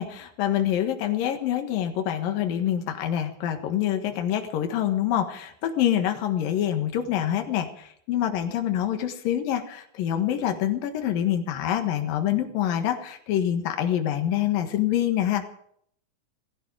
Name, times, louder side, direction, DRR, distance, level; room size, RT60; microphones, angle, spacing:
voice 1, 0.0-15.5, left 11 dB, 75° left, 6 dB, 3.3 m, -26 dB
18.0 x 16.0 x 5.0 m, 0.64 s
omnidirectional pair, 4.1 m